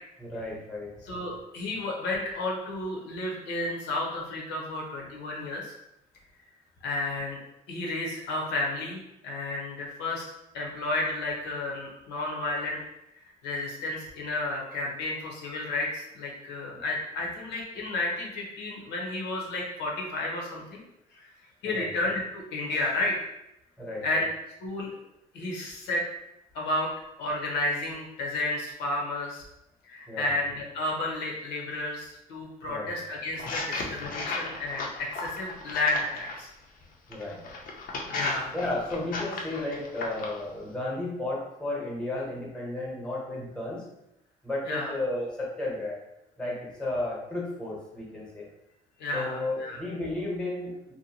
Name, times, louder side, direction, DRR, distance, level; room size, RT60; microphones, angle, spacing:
voice 1, 0.2-0.9 21.6-21.9 23.8-24.2 30.1-30.3 32.7-32.9 37.1-37.4 38.5-43.8 44.4-46.0 46.4-48.4 49.1-50.9, left 2 dB, 5° left, -3 dB, 0.9 m, -33 dB
voice 2, 1.0-5.7 6.8-7.4 7.7-12.8 13.4-20.8 21.1-21.3 21.6-23.1 24.0-24.3 24.6-24.9 25.3-26.0 26.5-26.9 27.2-29.4 29.8-36.5 38.1-38.5 44.7-44.9 49.0-49.8, left 2 dB, 90° left, -2 dB, 0.8 m, -32 dB
sound 1, 33.4-36.4 37.1-40.4, left 3 dB, 55° left, 0.6 m, -35 dB
2.6 x 2.1 x 2.8 m, 0.86 s
cardioid pair, 110°, 17 cm